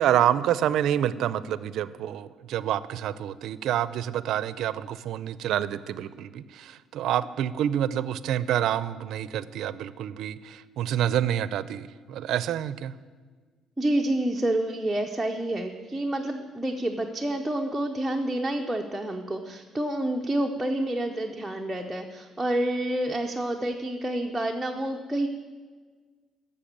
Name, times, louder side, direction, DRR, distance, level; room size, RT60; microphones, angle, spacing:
voice 1, 0.0-12.9, right 11 dB, 65° right, 16 dB, 0.5 m, -27 dB
voice 2, 13.8-25.3, right 1 dB, 5° right, 1 dB, 0.6 m, -28 dB
13.0 x 6.8 x 8.6 m, 1.5 s
cardioid pair, 160°, 0 cm